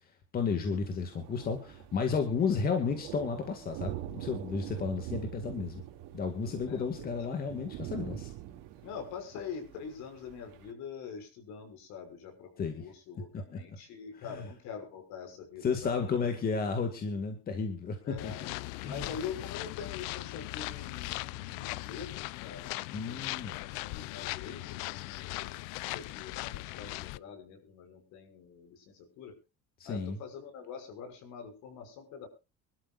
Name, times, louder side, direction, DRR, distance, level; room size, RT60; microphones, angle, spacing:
voice 1, 0.3-5.8 6.1-8.3 12.6-12.9 13.3-13.6 14.1-14.4 15.6-18.3 18.7-19.1 22.9-23.6 29.8-30.2, left 5 dB, 30° left, 6 dB, 2.0 m, -33 dB
Thunder, 0.7-10.7, right 13 dB, 75° right, 2.4 m, -44 dB
voice 2, 6.7-7.3 8.8-16.0 18.0-18.4 18.9-29.3 29.8-32.3, left 6 dB, 60° left, 6 dB, 5.9 m, -45 dB
sound 1, 18.2-27.2, left 21 dB, 80° left, 0.6 m, -39 dB
25.0 x 12.5 x 2.5 m, 0.29 s
cardioid pair, 160°, 32 cm